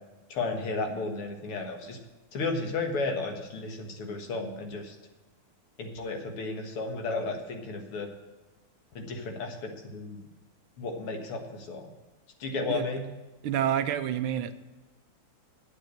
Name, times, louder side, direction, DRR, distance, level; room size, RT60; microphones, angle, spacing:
voice 1, 0.3-2.0 2.3-5.0 5.8-8.1 9.0-10.2 10.8-11.9 12.4-13.1, left 3 dB, 80° left, 4 dB, 2.5 m, -33 dB
voice 2, 13.4-14.5, right 10 dB, 75° right, 10 dB, 1.5 m, -28 dB
9.2 x 8.2 x 7.7 m, 1.2 s
omnidirectional pair, 2.4 m